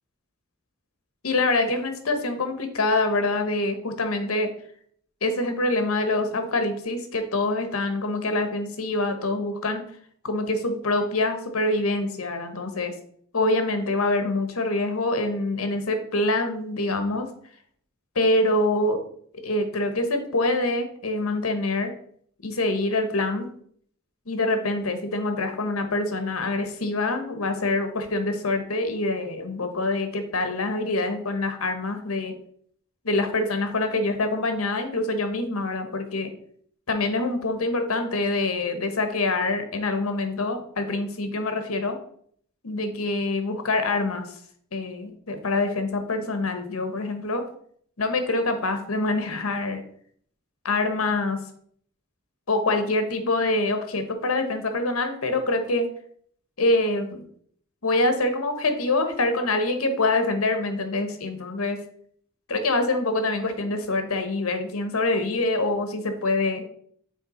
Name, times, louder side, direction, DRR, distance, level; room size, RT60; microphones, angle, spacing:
voice 1, 1.2-4.5 5.2-9.8 10.2-12.9 13.3-17.3 18.1-19.0 19.4-21.9 22.4-23.5 24.3-32.4 33.0-36.3 36.9-42.0 42.6-44.3 44.7-47.4 48.0-49.8 50.6-51.4 52.5-55.9 56.6-57.2 57.8-61.8 62.5-66.6, left 2 dB, 85° left, 7 dB, 1.1 m, -25 dB
6.6 x 4.5 x 4.3 m, 0.62 s
head